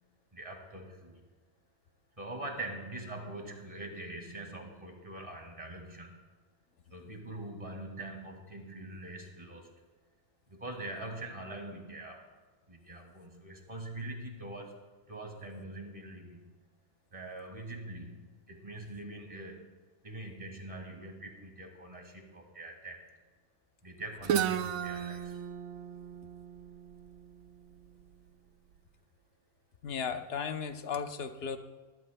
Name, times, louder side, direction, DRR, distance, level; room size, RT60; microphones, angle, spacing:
voice 1, 0.3-1.2 2.2-6.2 6.9-9.7 10.5-12.2 12.7-14.7 15.1-16.4 17.1-19.7 20.0-23.0 23.8-25.4, right 2 dB, 25° right, 2 dB, 2.0 m, -43 dB
Guitar, 24.2-28.0, right 9 dB, 85° right, 1.0 m, -34 dB
voice 2, 29.8-31.6, left 6 dB, 55° left, 8 dB, 0.9 m, -35 dB
19.5 x 14.0 x 2.2 m, 1.3 s
omnidirectional pair, 1.4 m